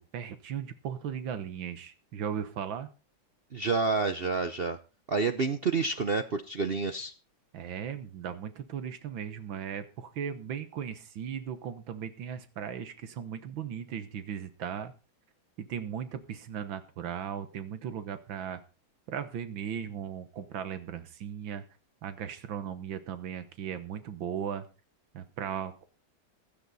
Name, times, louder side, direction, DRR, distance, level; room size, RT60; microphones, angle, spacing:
voice 1, 0.0-2.9 7.5-14.9 15.6-18.6 19.1-21.6 22.0-24.7 25.1-25.8, right 8 dB, 85° right, 11 dB, 1.9 m, -37 dB
voice 2, 3.5-4.8 5.1-7.1, right 4 dB, 50° right, 9 dB, 0.7 m, -29 dB
16.0 x 12.0 x 4.1 m, 0.33 s
omnidirectional pair, 2.1 m